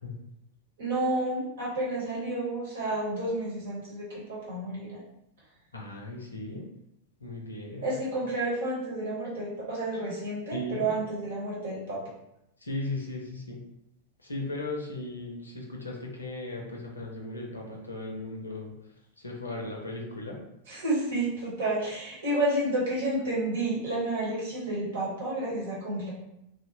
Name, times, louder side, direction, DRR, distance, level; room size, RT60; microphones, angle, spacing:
voice 1, 0.8-5.0 7.8-12.1 20.7-26.1, right 2 dB, 60° right, -6 dB, 1.1 m, -30 dB
voice 2, 5.7-6.6 7.2-8.0 10.5-10.9 12.6-13.6 14.2-18.7 19.2-20.4, left 2 dB, 80° left, 0 dB, 0.5 m, -37 dB
2.7 x 2.0 x 2.7 m, 0.82 s
figure-of-eight pair, 90°, 0 cm